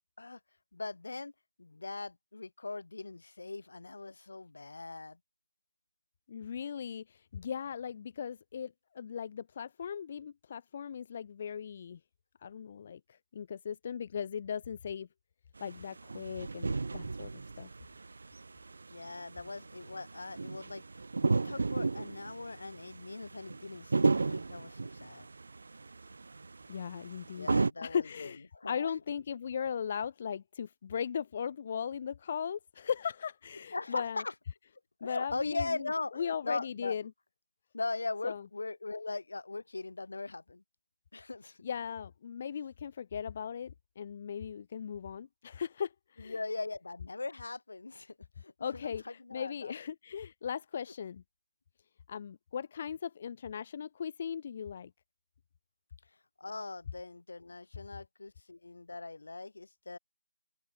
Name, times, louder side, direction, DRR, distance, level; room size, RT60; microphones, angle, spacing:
voice 1, 0.7-1.3 1.6-5.2 18.9-20.8 21.3-25.3 27.4-28.9 33.7-34.3 35.0-37.0 37.7-40.6 41.1-41.6 46.2-49.7 56.4-60.0, left 3 dB, 45° left, 5.3 m, -40 dB
voice 2, 6.3-12.0 12.4-15.1 15.6-17.3 17.6-17.7 26.7-34.2 35.0-35.9 36.2-37.0 38.2-38.4 41.6-46.4 48.6-51.2 52.1-54.9, left 7 dB, 20° left, 1.1 m, -38 dB
sound 1, 15.6-27.7, right 3 dB, 40° right, 1.9 m, -34 dB
open air
figure-of-eight pair, 180°, 0 cm